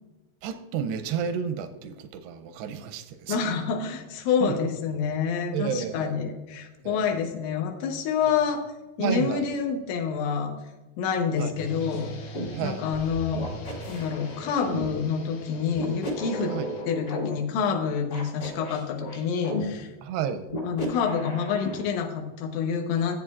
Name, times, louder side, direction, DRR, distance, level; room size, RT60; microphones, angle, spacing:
voice 1, 0.4-3.4 4.4-4.6 5.5-6.1 6.8-7.0 9.0-9.5 11.4-11.5 12.5-12.9 16.5-16.7 20.0-20.5, right 7 dB, 85° right, 9 dB, 2.3 m, -31 dB
voice 2, 3.3-8.6 9.0-10.5 11.0-12.1 12.6-13.4 13.9-16.5 16.9-19.9 20.6-23.1, left 6 dB, 85° left, 1 dB, 3.4 m, -27 dB
sound 1, 11.6-16.8, left 1 dB, 60° left, 3.7 m, -41 dB
sound 2, 12.3-12.5 13.4-14.9 15.7-17.3 18.1-19.6 20.5-21.8, equal, 40° left, 1.4 m, -34 dB
15.0 x 8.3 x 2.4 m, 1.1 s
omnidirectional pair, 5.2 m